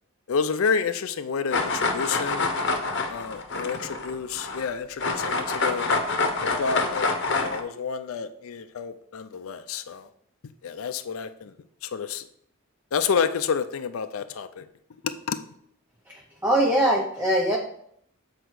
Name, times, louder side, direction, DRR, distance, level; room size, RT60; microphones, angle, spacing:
voice 1, 0.3-2.5 3.1-5.9 6.6-7.1 7.4-10.1 10.6-11.5 11.8-12.2 12.9-14.7 15.0-15.4, left 6 dB, 75° left, 9 dB, 0.4 m, -29 dB
sound 1, 1.5-4.7 5.0-7.6, left 3 dB, 55° left, 0.9 m, -26 dB
voice 2, 16.4-17.6, right 1 dB, 10° right, -1 dB, 0.7 m, -21 dB
7.9 x 4.4 x 4.7 m, 0.70 s
head